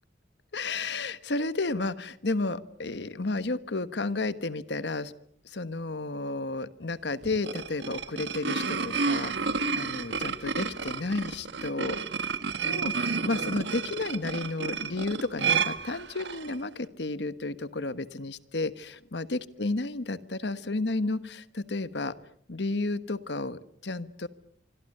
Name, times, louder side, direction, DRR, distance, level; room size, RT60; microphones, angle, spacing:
voice 1, 0.5-5.1 5.4-12.0 12.6-22.1 22.5-24.3, left 2 dB, 75° left, 14 dB, 1.3 m, -32 dB
sound 1, 7.2-16.5, right 5 dB, 80° right, 1.5 m, -31 dB
26.5 x 25.0 x 6.7 m, 0.63 s
head